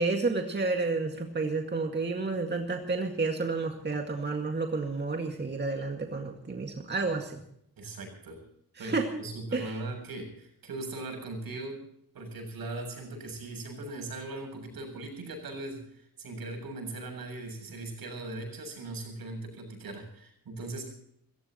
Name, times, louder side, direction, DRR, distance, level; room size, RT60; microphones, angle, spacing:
voice 1, 0.0-7.4 8.8-9.1 9.5-9.8, right 3 dB, 30° right, 3 dB, 2.0 m, -30 dB
voice 2, 7.8-8.4 8.8-11.8 12.1-20.9, right 2 dB, 75° right, 3 dB, 7.7 m, -39 dB
27.0 x 15.5 x 3.0 m, 0.69 s
wide cardioid pair, 120°, 36 cm